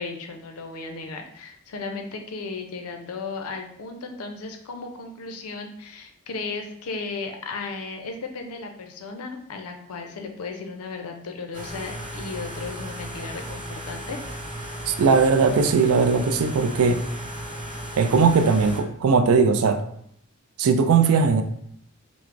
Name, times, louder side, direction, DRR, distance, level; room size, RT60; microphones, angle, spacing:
voice 1, 0.0-14.2, left 4 dB, 75° left, 4 dB, 0.5 m, -35 dB
sound 1, 11.5-18.8, right 1 dB, 25° right, 1.2 m, -35 dB
voice 2, 14.9-17.0 18.0-19.8 20.6-21.4, right 5 dB, 70° right, 8 dB, 0.3 m, -19 dB
4.4 x 2.0 x 2.4 m, 0.70 s
head